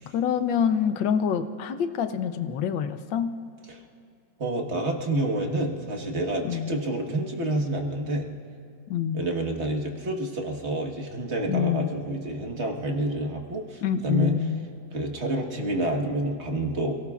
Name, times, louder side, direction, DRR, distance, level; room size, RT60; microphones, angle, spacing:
voice 1, 0.1-3.3 6.4-6.7 8.9-9.2 11.5-11.9 13.8-14.7, left 8 dB, 90° left, 9 dB, 1.5 m, -26 dB
voice 2, 4.4-8.3 9.1-14.4 14.9-17.0, right 1 dB, 40° right, 1 dB, 1.6 m, -28 dB
28.5 x 17.5 x 2.4 m, 2.5 s
omnidirectional pair, 2.0 m